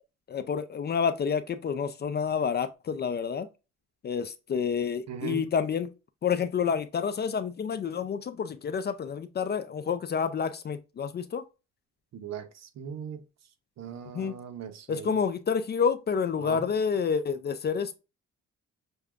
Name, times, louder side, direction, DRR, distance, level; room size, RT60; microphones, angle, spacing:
voice 1, 0.3-3.5 4.0-5.9 6.2-11.4 14.1-14.3 14.9-18.0, left 6 dB, 35° left, 0.4 m, -29 dB
voice 2, 5.1-5.5 12.1-13.2 13.8-15.2 16.4-16.6, right 7 dB, 60° right, 0.8 m, -39 dB
6.5 x 2.3 x 2.4 m
cardioid pair, 90°, 30 cm